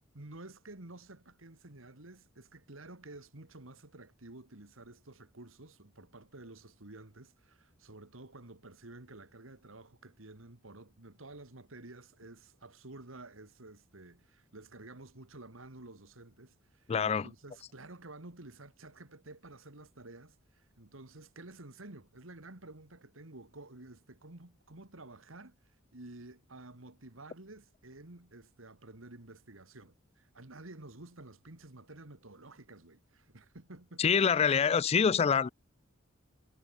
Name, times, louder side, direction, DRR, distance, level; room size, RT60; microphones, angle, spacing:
voice 1, 0.1-25.6 25.9-34.0, right 2 dB, 90° right, 2.4 m, -51 dB
voice 2, 16.9-17.3 34.0-35.5, left 6 dB, 30° left, 0.3 m, -26 dB
head